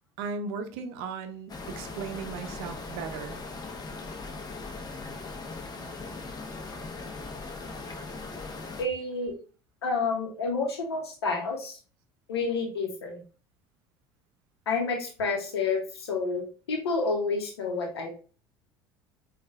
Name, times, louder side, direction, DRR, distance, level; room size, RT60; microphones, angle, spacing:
voice 1, 0.2-3.4, right 5 dB, 65° right, 0.6 m, -36 dB
sound 1, 1.5-8.8, left 3 dB, 30° left, 0.9 m, -39 dB
voice 2, 8.8-9.3 9.8-11.8 12.3-13.2 14.7-18.1, left 4 dB, 85° left, 0.9 m, -29 dB
5.4 x 2.4 x 2.4 m
hypercardioid pair, 65°, 13 cm